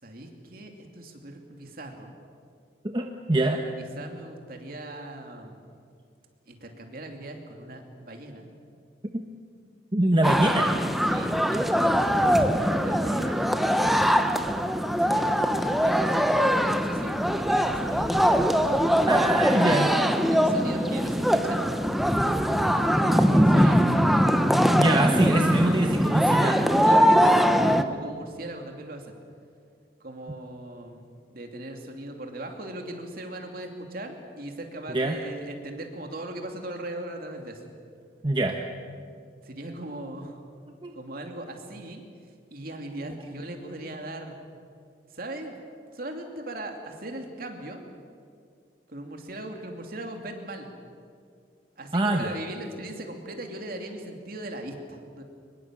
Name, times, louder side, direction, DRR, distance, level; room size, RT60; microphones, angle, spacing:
voice 1, 0.0-2.1 3.5-5.6 6.5-8.5 11.1-13.8 14.8-18.2 18.9-19.9 20.3-21.6 23.0-23.9 24.7-25.6 26.8-29.2 30.0-31.0 31.3-37.6 39.4-40.4 40.9-42.0 42.5-44.4 45.1-45.5 45.9-47.8 48.9-50.7 51.8-55.2, right 1 dB, 50° right, 3 dB, 2.8 m, -39 dB
voice 2, 2.8-3.6 9.1-9.2 9.9-10.7 19.1-19.9 24.7-26.6 34.9-35.2 38.2-38.6 40.8-40.9 51.9-52.3, right 1 dB, 25° right, 3 dB, 1.1 m, -24 dB
sound 1, 10.2-27.8, equal, ahead, 0.8 m, -22 dB
23.5 x 21.0 x 7.6 m, 2.2 s
head